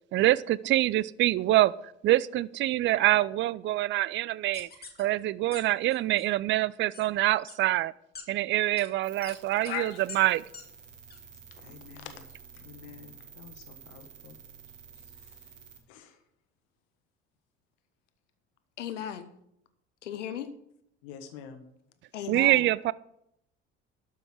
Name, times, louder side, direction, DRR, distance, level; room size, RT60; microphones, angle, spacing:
voice 1, 0.1-1.7 2.0-4.7 5.0-7.9 8.3-10.4 22.3-22.9, right 15 dB, 35° right, 21 dB, 0.4 m, -25 dB
sound 1, 4.5-5.0 5.5-5.6 5.9-6.3 6.9-7.0 7.5-7.6 8.2-8.3 8.8-8.9 9.2-9.4 9.6-9.8 10.1-10.2 10.5-10.6 11.1-11.2, left 5 dB, 25° left, 2.4 m, -44 dB
sound 2, 9.0-15.8, right 6 dB, 80° right, 1.7 m, -51 dB
voice 2, 9.6-10.0 11.6-12.2 12.6-14.4 15.9-16.1 21.0-21.6, left 9 dB, 65° left, 8 dB, 1.3 m, -42 dB
voice 3, 18.8-19.3 20.0-20.5 22.1-22.6, left 9 dB, 80° left, 12 dB, 0.9 m, -36 dB
12.5 x 5.6 x 6.0 m, 0.76 s
figure-of-eight pair, 60°, 36 cm